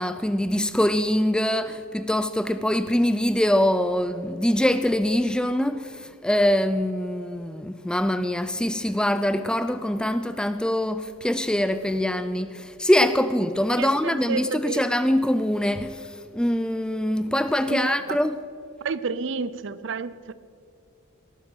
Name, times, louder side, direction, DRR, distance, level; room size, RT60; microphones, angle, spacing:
voice 1, 0.0-18.4, left 1 dB, 5° left, 0.4 m, -24 dB
voice 2, 13.8-14.9 17.7-18.2 18.8-20.3, right 4 dB, 55° right, 0.5 m, -30 dB
19.0 x 11.5 x 6.3 m
head